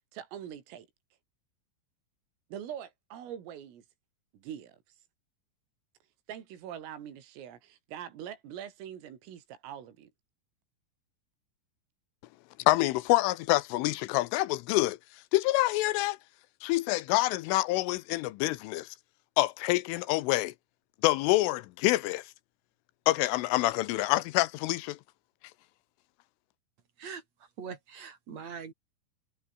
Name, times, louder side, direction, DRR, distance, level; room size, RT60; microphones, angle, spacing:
voice 1, 0.1-0.9 2.5-3.9 4.3-4.8 6.3-10.1, right 9 dB, 80° right, 5.8 m, -43 dB
voice 2, 12.7-15.0 15.3-16.2 16.6-18.9 19.4-20.5 21.0-22.2 23.1-25.0, left 18 dB, 80° left, 3.3 m, -26 dB
voice 3, 27.6-28.7, right 6 dB, 40° right, 3.3 m, -42 dB
omnidirectional pair, 5.8 m